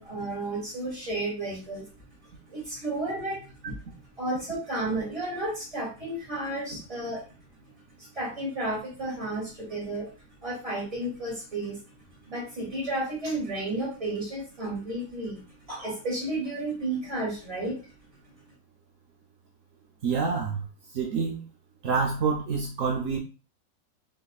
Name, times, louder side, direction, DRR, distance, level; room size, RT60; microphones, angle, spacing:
voice 1, 0.0-1.9 2.5-3.8 4.2-7.2 8.0-10.1 10.4-11.8 12.2-17.8, right 2 dB, 20° right, -3 dB, 1.6 m, -32 dB
voice 2, 20.0-20.6 20.9-21.4 21.8-23.2, right 5 dB, 75° right, 0 dB, 0.7 m, -27 dB
4.0 x 3.3 x 2.3 m, 0.33 s
omnidirectional pair, 2.1 m